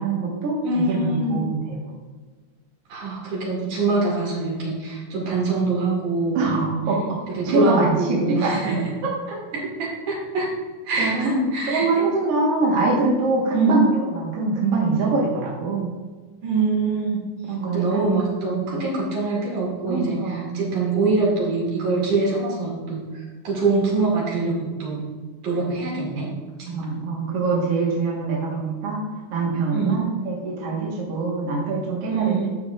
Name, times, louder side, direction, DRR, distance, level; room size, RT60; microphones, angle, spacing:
voice 1, 0.0-1.8 6.3-7.0 7.4-8.6 9.0-9.1 11.0-11.4 11.7-15.9 17.5-18.1 18.5-18.8 19.9-20.7 26.7-29.0 29.3-32.5, right 3 dB, 50° right, -5 dB, 2.3 m, -23 dB
voice 2, 0.6-1.5 2.9-6.7 7.3-8.9 9.5-10.5 10.9-12.0 13.5-13.8 16.4-17.2 17.7-25.0 25.4-26.3 26.7-26.8 29.7-30.1 32.1-32.5, right 3 dB, 65° right, -4 dB, 4.0 m, -24 dB
12.0 x 7.5 x 2.6 m, 1.4 s
omnidirectional pair, 3.9 m